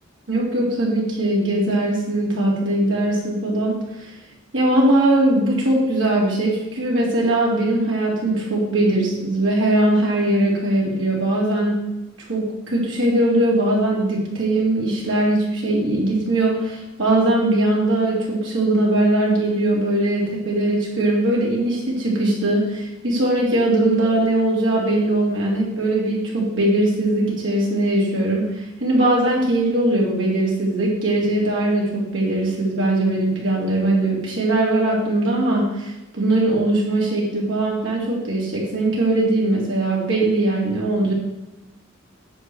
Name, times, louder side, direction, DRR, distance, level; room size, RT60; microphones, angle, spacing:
voice 1, 0.3-4.1 4.5-11.8 12.3-28.5 28.8-41.1, right 1 dB, 65° right, -4 dB, 3.6 m, -20 dB
9.9 x 7.2 x 4.7 m, 1.0 s
head